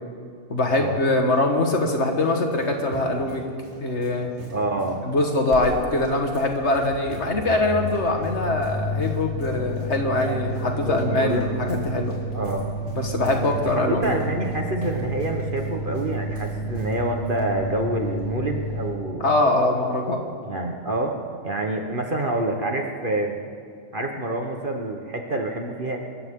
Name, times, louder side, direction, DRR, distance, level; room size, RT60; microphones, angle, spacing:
voice 1, 0.5-3.4 3.8-4.3 5.0-12.2 13.0-14.3 19.2-20.2, left 2 dB, 50° left, 3 dB, 1.8 m, -23 dB
sound 1, 1.3-17.4, right 2 dB, 55° right, 3.7 m, -44 dB
voice 2, 4.5-5.0 10.8-11.4 12.3-12.7 13.4-19.3 20.4-21.2 21.4-23.4 23.9-26.0, right 1 dB, 40° right, 2 dB, 1.3 m, -27 dB
sound 2, 5.5-5.6 5.9-18.9, right 1 dB, 75° left, 2.2 m, -31 dB
26.0 x 14.5 x 3.8 m, 2.4 s
omnidirectional pair, 1.5 m